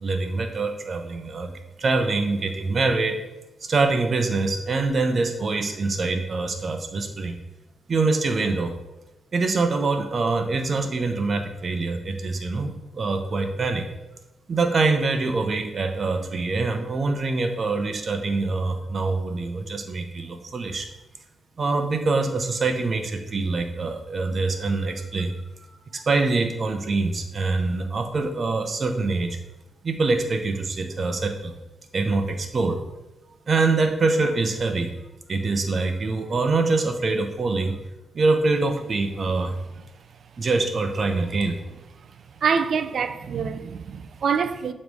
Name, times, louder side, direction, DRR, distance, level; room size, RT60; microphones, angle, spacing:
voice 1, 0.0-1.5 1.8-3.2 3.6-7.4 7.9-8.7 9.3-13.9 14.5-20.9 21.6-25.3 25.9-29.4 29.8-31.5 31.9-32.8 33.5-34.9 35.3-37.8 38.1-39.6 40.4-41.6, right 3 dB, 50° right, 0.8 m, -24 dB
voice 2, 42.4-44.7, right 6 dB, 65° right, 0.4 m, -25 dB
7.1 x 3.2 x 4.8 m
cardioid pair, 80°, 0 cm